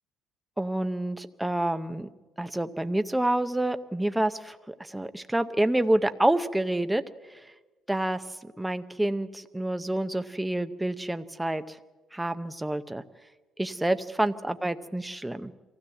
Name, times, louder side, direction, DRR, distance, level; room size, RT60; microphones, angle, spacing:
voice 1, 0.6-2.1 2.4-7.0 7.9-8.2 8.6-11.8 12.1-13.0 13.6-15.5, right 1 dB, 5° right, 10 dB, 0.6 m, -28 dB
24.0 x 16.0 x 7.7 m, 1.2 s
cardioid pair, 170°, 0 cm